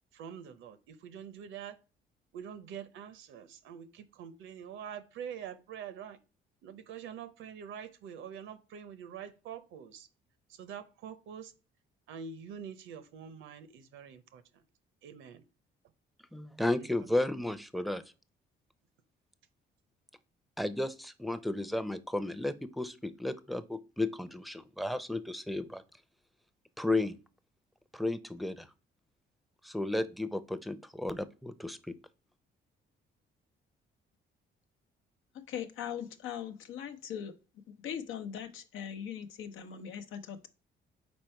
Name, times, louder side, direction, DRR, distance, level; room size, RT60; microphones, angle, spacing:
voice 1, 0.1-1.8 2.3-6.2 6.6-10.1 10.5-11.5 12.1-14.6 15.0-15.4 16.7-17.1, right 8 dB, 80° right, 13 dB, 0.8 m, -45 dB
voice 2, 16.3-18.0 20.6-25.8 26.8-27.2 27.9-28.7 29.6-32.0, left 2 dB, ahead, 13 dB, 0.5 m, -33 dB
voice 3, 35.3-37.3 37.8-40.5, left 8 dB, 90° left, 8 dB, 0.8 m, -40 dB
5.2 x 4.4 x 4.4 m, 0.34 s
cardioid pair, 90°, 20 cm